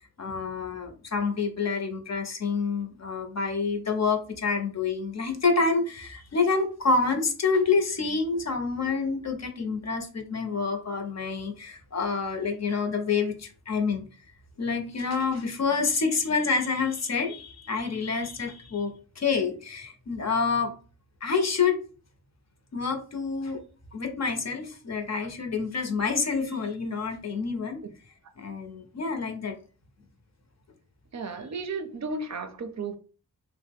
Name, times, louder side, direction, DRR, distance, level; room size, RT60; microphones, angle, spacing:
voice 1, 0.2-14.0 14.6-20.7 21.2-21.8 22.7-23.6 23.9-27.8 28.4-29.5, left 4 dB, 50° left, 0.7 m, -28 dB
voice 2, 31.1-33.0, right 3 dB, 50° right, 0.5 m, -34 dB
2.7 x 2.0 x 3.4 m
cardioid pair, 45°, 36 cm